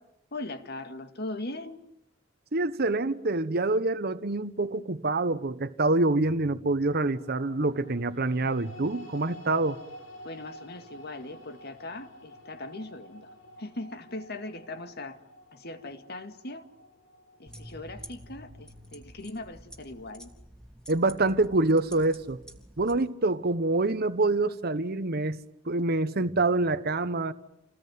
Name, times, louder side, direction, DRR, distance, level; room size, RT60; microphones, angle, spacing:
voice 1, 0.3-1.8 10.2-13.3 13.6-15.2 15.5-16.7 17.4-20.3, left 2 dB, 55° left, 2.1 m, -39 dB
voice 2, 2.5-9.8 20.9-22.4 22.8-25.4 25.7-27.3, right 2 dB, 55° right, 1.1 m, -26 dB
sound 1, 6.9-19.1, equal, 85° left, 4.6 m, -51 dB
sound 2, 17.5-23.0, equal, 5° left, 3.0 m, -49 dB
28.5 x 19.5 x 9.5 m
head